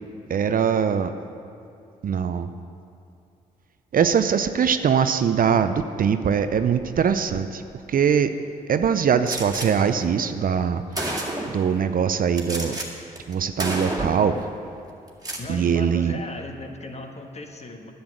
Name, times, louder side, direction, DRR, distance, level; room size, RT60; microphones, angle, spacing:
voice 1, 0.3-1.1 2.0-2.5 3.9-7.6 7.9-8.3 8.7-12.8 13.3-14.4 15.5-16.1, right 7 dB, 45° right, 10 dB, 0.6 m, -22 dB
Gunshot gunfire, 9.3-9.7 10.5-10.6 10.9-11.6 12.4-12.9 13.2-13.3 13.6-14.3 15.1-15.5, right 1 dB, 20° right, 2.2 m, -29 dB
voice 2, 15.4-17.9, left 2 dB, 35° left, 4 dB, 1.4 m, -37 dB
10.5 x 7.0 x 7.8 m, 2.5 s
hypercardioid pair, 40°, 19 cm